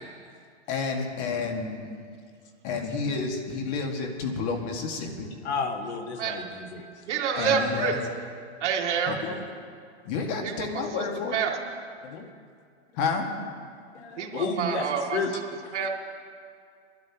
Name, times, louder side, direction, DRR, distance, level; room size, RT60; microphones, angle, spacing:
voice 1, 0.7-1.9 2.6-5.3 7.4-8.0 9.1-9.4 10.1-11.4 13.0-13.3, left 4 dB, 40° left, 3 dB, 1.9 m, -30 dB
voice 2, 5.4-6.8 12.0-12.3 13.9-15.3 15.6-15.7, left 4 dB, 70° left, 6 dB, 1.5 m, -32 dB
voice 3, 7.1-7.9 8.6-9.2 10.4-10.7 10.9-11.0 11.3-11.5 14.2-15.4 15.7-15.9, right 6 dB, 75° right, 0 dB, 2.5 m, -27 dB
23.0 x 12.0 x 3.0 m, 2.2 s
hypercardioid pair, 155°, 35 cm